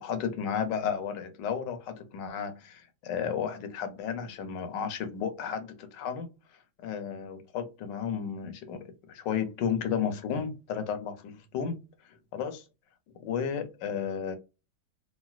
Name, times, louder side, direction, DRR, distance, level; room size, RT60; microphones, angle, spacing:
voice 1, 0.0-6.3 6.8-11.8 12.3-12.6 13.2-14.4, left 7 dB, 70° left, 1.2 m, -33 dB
3.1 x 2.8 x 2.3 m
omnidirectional pair, 2.1 m